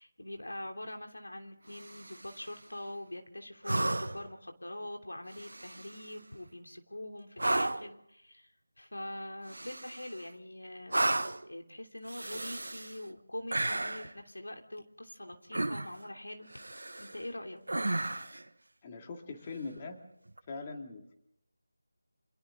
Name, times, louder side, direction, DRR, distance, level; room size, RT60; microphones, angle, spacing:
voice 1, 0.0-16.5 17.0-17.6, left 1 dB, 90° left, 4 dB, 3.1 m, -44 dB
sound 1, 1.7-2.4 3.6-4.3 5.3-6.1 7.4-7.9 9.5-10.2 10.9-11.5 12.1-13.0 13.5-14.1 15.5-16.1 16.5-17.2 17.7-18.4 20.3-20.4, right 2 dB, 80° right, 1.3 m, -33 dB
voice 2, 18.8-20.0 20.5-21.1, left 4 dB, 25° left, 3 dB, 2.4 m, -42 dB
28.0 x 26.0 x 3.9 m, 0.77 s
figure-of-eight pair, 165°, 0 cm